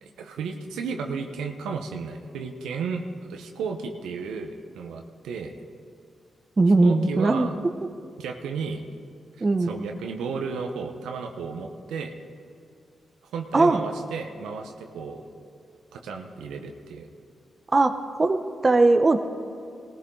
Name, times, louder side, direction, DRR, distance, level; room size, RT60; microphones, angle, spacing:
voice 1, 0.0-5.5 6.8-7.5 8.2-8.8 9.4-12.1 13.3-15.2 15.9-17.1, right 5 dB, 85° right, 4 dB, 0.9 m, -33 dB
voice 2, 6.6-7.5 9.4-9.7 13.5-13.8 17.7-19.2, right 3 dB, 40° right, 9 dB, 0.8 m, -20 dB
18.0 x 14.5 x 3.8 m, 2.4 s
supercardioid pair, 45°, 0 cm